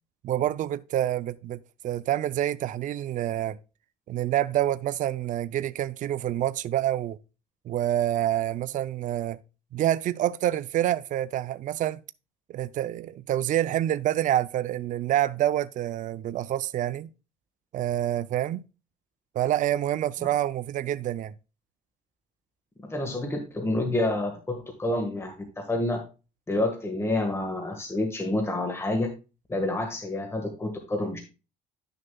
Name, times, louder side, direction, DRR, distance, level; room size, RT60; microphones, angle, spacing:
voice 1, 0.2-3.6 4.1-7.2 7.7-9.4 9.7-12.0 12.5-17.1 17.7-18.6 19.3-21.3, right 12 dB, 50° right, 0.4 m, -27 dB
voice 2, 22.8-26.0 26.5-29.1 29.5-31.2, left 1 dB, 15° left, 1.4 m, -28 dB
10.5 x 6.6 x 2.2 m
cardioid pair, 110°, 17 cm